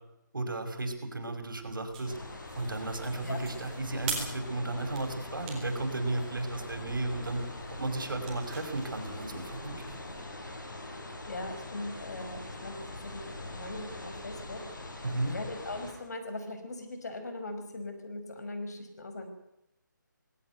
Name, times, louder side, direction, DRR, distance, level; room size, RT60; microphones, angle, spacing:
voice 1, 0.3-2.2 2.6-10.0 15.0-15.3, right 2 dB, 85° right, 5 dB, 5.9 m, -34 dB
sound 1, 1.4-10.2, right 5 dB, 15° right, 4.2 m, -45 dB
sound 2, 2.0-15.9, left 2 dB, 70° left, 7.9 m, -43 dB
voice 2, 11.3-12.8 13.0-14.6 15.2-19.3, left 2 dB, 55° left, 8 dB, 5.3 m, -40 dB
20.5 x 16.5 x 9.4 m, 0.86 s
hypercardioid pair, 175°, 11 cm